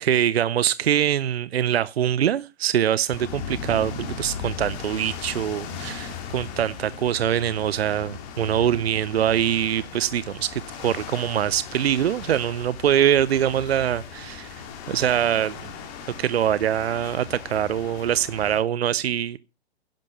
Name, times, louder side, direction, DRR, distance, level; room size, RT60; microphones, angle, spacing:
voice 1, 0.0-14.6 14.9-15.6 16.2-19.4, right 10 dB, 70° right, 0.6 m, -23 dB
sound 1, 3.1-18.6, left 6 dB, 35° left, 3.2 m, -37 dB
11.0 x 10.5 x 5.6 m
figure-of-eight pair, 125°, 32 cm